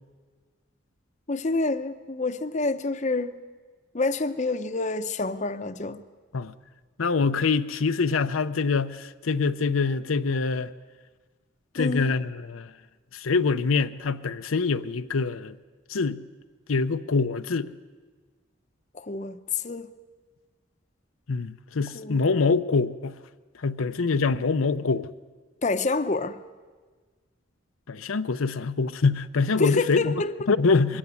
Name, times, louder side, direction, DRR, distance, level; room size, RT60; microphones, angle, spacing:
voice 1, 1.3-3.4 3.9-6.0 11.8-12.1 18.9-19.9 21.9-22.2 25.6-26.4 29.6-30.3, left 3 dB, 35° left, 0.7 m, -28 dB
voice 2, 7.0-10.7 11.7-12.7 13.1-15.5 15.9-16.2 16.7-17.7 21.3-23.1 23.6-25.1 27.9-30.2 30.5-31.0, left 4 dB, 85° left, 0.7 m, -25 dB
22.5 x 16.0 x 9.6 m
head